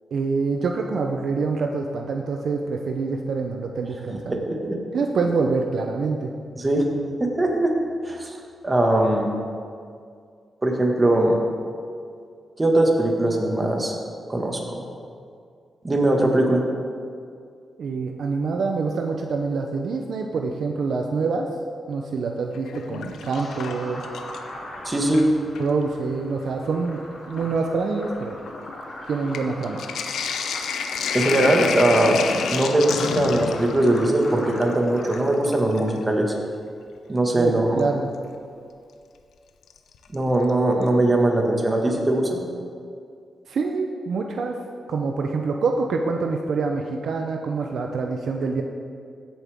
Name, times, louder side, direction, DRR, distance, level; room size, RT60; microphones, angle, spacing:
voice 1, 0.1-4.5 4.9-6.3 17.8-21.5 21.9-24.0 25.6-27.0 27.3-28.7 29.1-29.8 37.3-38.1 43.5-44.6 44.9-48.6, right 4 dB, 75° right, 3 dB, 0.7 m, -26 dB
voice 2, 4.3-4.8 6.6-6.8 7.2-7.7 8.0-8.4 8.6-9.3 10.6-11.4 12.6-13.9 14.3-14.8 15.8-16.6 24.9-25.3 31.1-32.2 32.5-36.3 37.1-37.8 40.1-42.4, right 1 dB, 25° right, 1 dB, 1.8 m, -20 dB
Sink (filling or washing), 22.5-24.6 24.9-25.7 26.5-26.6 26.9-36.0 37.8-37.9 39.7-40.1 40.5-40.6 40.8-40.9, left 6 dB, 90° left, 0.6 m, -30 dB
sound 1, 23.3-35.2, left 1 dB, 50° left, 3.0 m, -40 dB
16.0 x 7.1 x 3.6 m, 2.3 s
cardioid pair, 80°, 0 cm